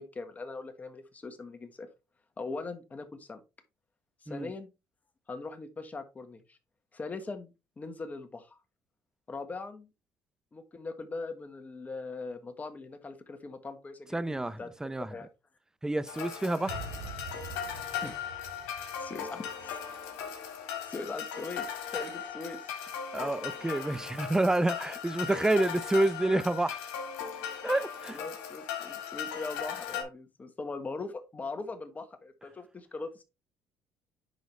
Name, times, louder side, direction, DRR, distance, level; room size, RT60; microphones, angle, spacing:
voice 1, 0.0-1.9 2.4-3.4 4.2-4.7 5.3-6.6 6.9-8.6 9.3-9.9 10.5-15.3 18.0-18.1 19.0-19.8 20.9-22.7 28.1-33.2, left 3 dB, 25° left, 1.5 m, -41 dB
voice 2, 14.1-15.1 15.8-16.8 23.1-26.8 27.6-28.2, right 2 dB, 10° right, 0.6 m, -28 dB
sound 1, 16.1-30.0, left 8 dB, 90° left, 2.1 m, -38 dB
sound 2, 16.7-19.9 20.1-20.4, right 6 dB, 80° right, 1.2 m, -45 dB
10.5 x 3.9 x 3.3 m
supercardioid pair, 90°, 6 cm